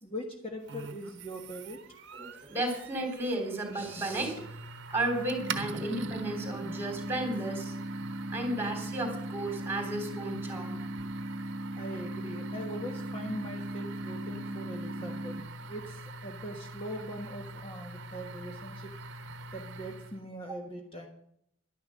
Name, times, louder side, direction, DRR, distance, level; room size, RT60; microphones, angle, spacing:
voice 1, 0.0-1.8 11.7-15.4 15.7-18.9 19.5-21.1, equal, 25° left, 1 dB, 1.3 m, -41 dB
sound 1, 0.7-20.2, right 2 dB, 55° right, 1.0 m, -44 dB
voice 2, 2.1-4.6 4.9-7.7 8.3-10.8, right 1 dB, 10° right, 3 dB, 3.4 m, -33 dB
sound 2, 5.4-15.4, right 1 dB, 35° right, 0.7 m, -38 dB
11.5 x 10.5 x 6.4 m, 0.69 s
head